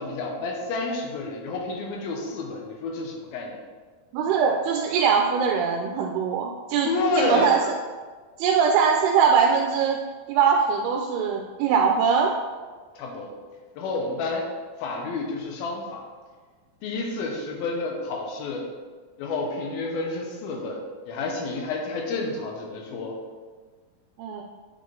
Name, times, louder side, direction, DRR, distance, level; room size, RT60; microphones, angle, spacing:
voice 1, 0.0-3.6 6.8-7.7 12.9-13.3 13.8-14.5 14.8-16.0 16.8-18.7 19.2-23.2, left 3 dB, 75° left, 1 dB, 2.6 m, -29 dB
voice 2, 4.1-6.9 7.2-7.6 8.4-10.0 10.3-12.3 24.2-24.4, right 6 dB, 85° right, 1 dB, 2.5 m, -21 dB
8.5 x 3.7 x 3.8 m, 1.4 s
omnidirectional pair, 4.5 m